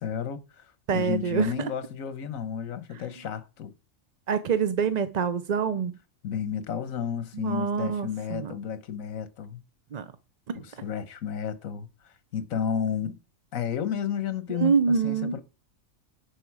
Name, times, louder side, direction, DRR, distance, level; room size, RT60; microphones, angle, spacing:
voice 1, 0.0-3.7 6.2-9.6 10.5-13.2 13.5-15.4, left 8 dB, 80° left, 1.4 m, -32 dB
voice 2, 0.9-1.7 4.3-6.0 7.3-8.5 9.9-10.1 10.5-10.6 14.5-15.4, right 6 dB, 50° right, 0.5 m, -26 dB
10.5 x 6.6 x 4.8 m
omnidirectional pair, 1.4 m